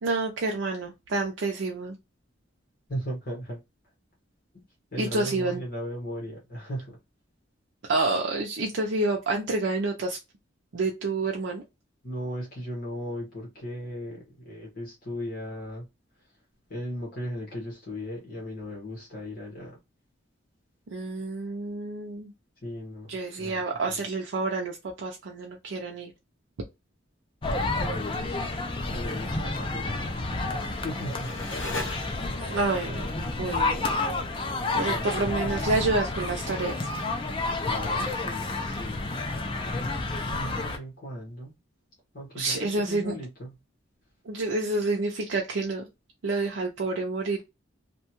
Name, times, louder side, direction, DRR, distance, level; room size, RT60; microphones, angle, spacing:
voice 1, 0.0-2.0 5.0-5.6 7.9-10.2 10.7-11.6 20.9-22.3 23.1-26.1 32.4-33.1 33.4-33.9 34.7-36.9 42.3-43.1 44.3-45.8 46.2-47.4, right 3 dB, 70° right, 0.5 m, -28 dB
voice 2, 2.9-3.6 4.5-4.6 4.9-7.0 12.0-15.9 16.7-19.8 22.6-23.1 23.4-23.6 27.8-28.5 28.9-31.3 34.7-35.3 37.7-39.2 39.5-39.6 40.1-41.5 42.1-43.6, equal, 50° left, 1.1 m, -37 dB
sound 1, 27.4-40.8, left 2 dB, 25° left, 0.4 m, -30 dB
sound 2, 30.2-32.6, left 2 dB, 75° left, 0.8 m, -38 dB
2.7 x 2.2 x 2.8 m
head